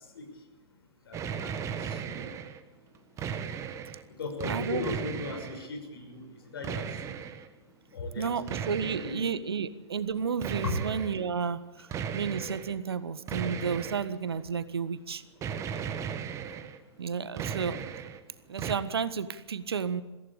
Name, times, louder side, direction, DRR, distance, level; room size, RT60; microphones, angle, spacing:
voice 1, 1.1-1.5 1.8-2.3 4.2-6.2 6.5-6.8 7.9-8.4 8.8-9.3 10.6-10.8, left 3 dB, 60° left, 5 dB, 5.9 m, -37 dB
Punchy Laser Fire, 1.1-2.6 2.9-4.0 4.4-5.7 6.6-7.5 8.5-9.3 10.4-11.2 11.9-12.8 13.3-14.4 15.4-16.8 17.1-18.2 18.6-18.7, right 7 dB, 20° right, 1.5 m, -36 dB
voice 2, 4.4-5.0 8.2-15.2 17.0-17.8 18.5-20.0, right 6 dB, 65° right, 14 dB, 1.5 m, -32 dB
22.5 x 15.5 x 8.5 m, 1.1 s
figure-of-eight pair, 110°, 14 cm